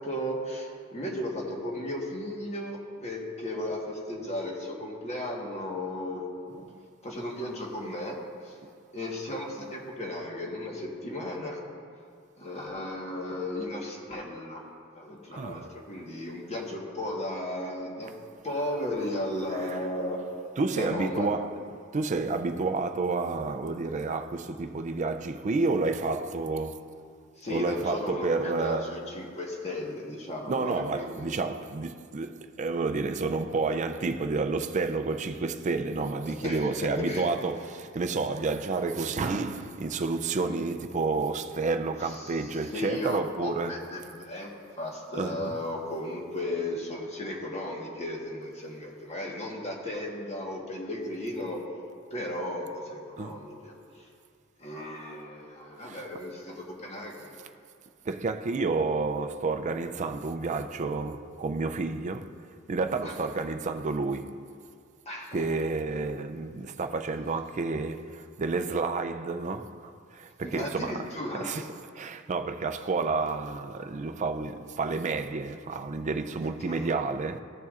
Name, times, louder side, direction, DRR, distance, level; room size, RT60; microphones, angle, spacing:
voice 1, 0.0-6.2 7.0-8.2 8.4-8.6 8.9-11.6 12.4-14.6 14.9-18.1 18.4-20.2 20.7-21.3 27.4-31.3 36.2-37.3 40.4-40.7 42.0-51.6 52.1-54.1 54.6-57.3 63.0-63.1 65.0-65.4 70.4-71.6 76.7-76.9, left 1 dB, 35° left, 1.3 m, -35 dB
voice 2, 6.5-6.9 15.3-15.8 19.5-19.9 20.6-26.9 27.5-29.1 30.5-43.9 45.1-45.6 53.2-53.4 55.8-56.1 58.1-62.3 62.7-64.5 65.3-77.4, right 3 dB, 35° right, 0.4 m, -30 dB
15.5 x 6.8 x 2.5 m
head